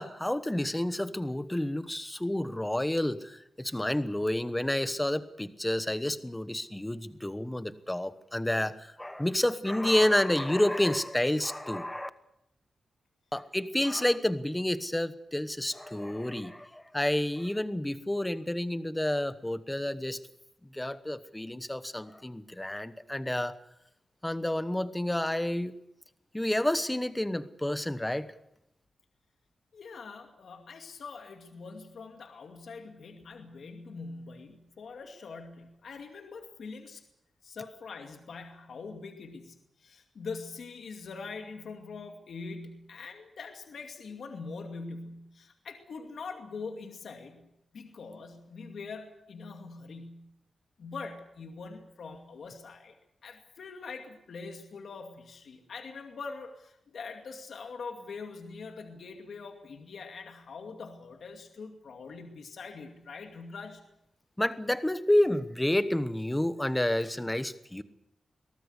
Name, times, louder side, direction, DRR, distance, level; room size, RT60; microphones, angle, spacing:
voice 1, 0.0-12.1 13.3-20.2 20.7-23.6 24.2-25.7 26.3-28.3 64.4-67.8, left 1 dB, 10° left, 12 dB, 1.0 m, -29 dB
voice 2, 29.7-37.0 37.4-47.5 47.7-50.3 50.8-52.9 53.2-63.8, left 4 dB, 65° left, 4 dB, 2.4 m, -43 dB
22.5 x 18.5 x 8.2 m, 0.82 s
wide cardioid pair, 175°, 0 cm